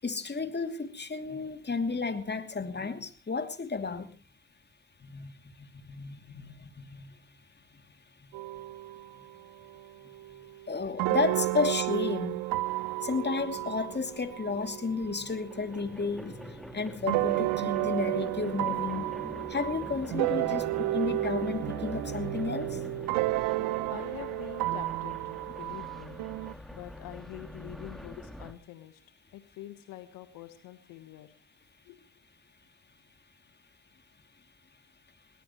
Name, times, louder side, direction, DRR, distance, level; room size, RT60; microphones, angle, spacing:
voice 1, 0.0-4.1 5.1-5.3 5.8-7.0 10.7-12.4 13.0-19.1 19.5-22.7, left 4 dB, 30° left, 8 dB, 2.8 m, -32 dB
sound 1, 8.3-9.4 9.7-16.0 17.1-26.5, right 18 dB, 85° right, 0.7 m, -32 dB
sound 2, 13.5-14.7 15.1-28.5, left 1 dB, ahead, 3.3 m, -44 dB
voice 2, 23.9-25.2 25.5-26.2 26.7-29.0 29.3-31.3 31.8-32.0, left 13 dB, 85° left, 11 dB, 1.4 m, -45 dB
22.5 x 18.5 x 3.1 m, 0.35 s
supercardioid pair, 55°, 33 cm